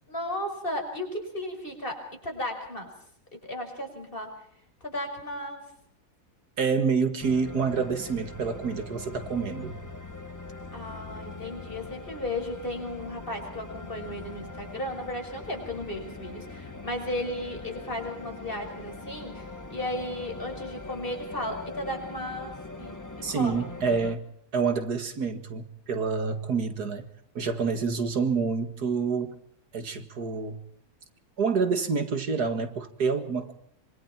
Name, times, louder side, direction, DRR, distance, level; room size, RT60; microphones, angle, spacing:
voice 1, 0.1-2.9 3.3-4.4 4.8-5.7 10.7-23.7, left 1 dB, 35° left, 3 dB, 6.0 m, -35 dB
voice 2, 6.6-9.8 23.2-24.3 24.5-27.1 27.3-29.4 29.7-30.6 31.4-33.5, right 5 dB, 75° right, 9 dB, 2.4 m, -27 dB
sound 1, 7.2-24.2, left 3 dB, 10° left, 1.4 m, -42 dB
26.0 x 25.5 x 4.4 m, 0.66 s
omnidirectional pair, 1.7 m